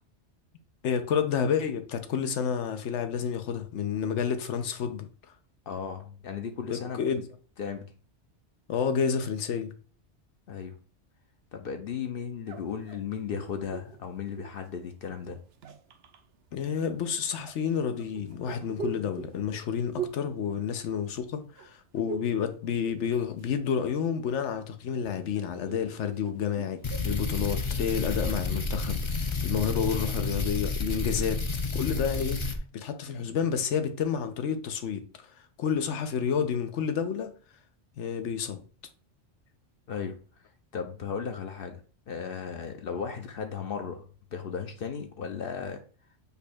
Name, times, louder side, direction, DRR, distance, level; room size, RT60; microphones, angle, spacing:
voice 1, 0.8-5.1 6.7-7.2 8.7-9.7 16.5-29.1 29.4-31.4 31.7-32.4 32.7-35.0 35.6-37.3 38.0-38.6, left 7 dB, 85° left, 1.0 m, -30 dB
voice 2, 5.7-7.0 7.6-7.9 10.5-10.8 11.5-15.4 39.9-40.2 40.7-41.8 42.1-45.8, left 6 dB, 60° left, 0.7 m, -35 dB
sound 1, 12.5-14.7 15.4-16.2 17.3-21.3 21.6-22.4 22.7-23.6 23.9-27.2, right 6 dB, 65° right, 0.8 m, -42 dB
sound 2, 26.8-32.6, left 3 dB, 40° left, 0.4 m, -30 dB
5.4 x 2.3 x 4.2 m
omnidirectional pair, 1.2 m